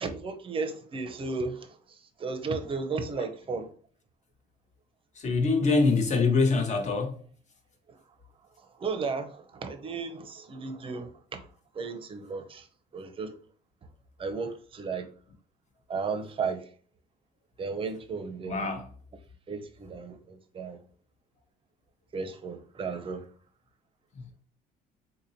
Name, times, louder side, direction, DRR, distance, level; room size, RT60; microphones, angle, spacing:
voice 1, 0.0-3.7 7.9-8.0 8.6-11.5 11.7-12.7 12.9-13.3 14.2-15.1 15.9-16.7 17.6-18.7 19.5-20.8 22.1-23.2, right 4 dB, 30° right, 0.6 m, -34 dB
voice 2, 5.2-7.2 18.5-18.9, left 4 dB, 45° left, 0.8 m, -24 dB
3.9 x 2.8 x 2.6 m
cardioid pair, 110°, 17 cm